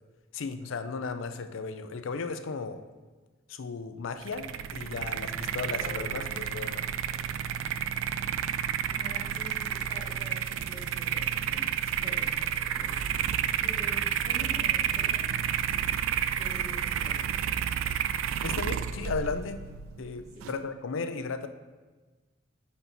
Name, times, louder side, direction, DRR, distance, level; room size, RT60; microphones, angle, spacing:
voice 1, 0.3-2.8 3.5-6.8 18.4-19.6 20.0-21.5, left 4 dB, 70° left, 10 dB, 0.4 m, -35 dB
sound 1, 4.2-20.6, right 9 dB, 80° right, 0.3 m, -31 dB
sound 2, 5.8-10.3, left 3 dB, 45° right, 1.4 m, -51 dB
voice 2, 8.9-13.0 13.6-15.9 16.4-17.5 20.3-20.5, right 1 dB, 20° right, -6 dB, 1.7 m, -46 dB
5.1 x 4.2 x 5.8 m, 1.3 s
head